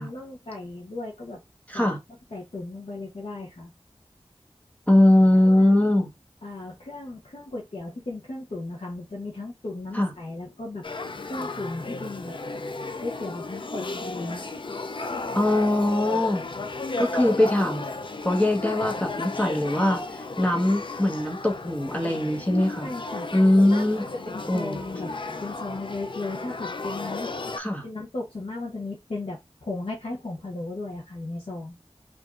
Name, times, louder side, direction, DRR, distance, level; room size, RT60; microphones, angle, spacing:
voice 1, 0.0-1.4 1.7-1.9 2.3-3.7 5.4-5.7 6.4-10.9 11.2-12.4 13.0-14.5 22.8-23.3 23.6-25.1 25.4-27.3 27.8-31.8, left 2 dB, 70° left, 0.9 m, -36 dB
voice 2, 4.9-6.1 9.9-10.1 15.3-16.4 17.0-17.8 18.2-22.9 23.3-24.0 24.5-24.8 27.6-27.8, left 1 dB, 15° left, 1.2 m, -21 dB
Male speech man speaking / Child speech kid speaking / Conversation, 10.8-27.6, left 3 dB, 50° left, 0.4 m, -34 dB
4.6 x 2.6 x 2.4 m
wide cardioid pair, 55°, 11 cm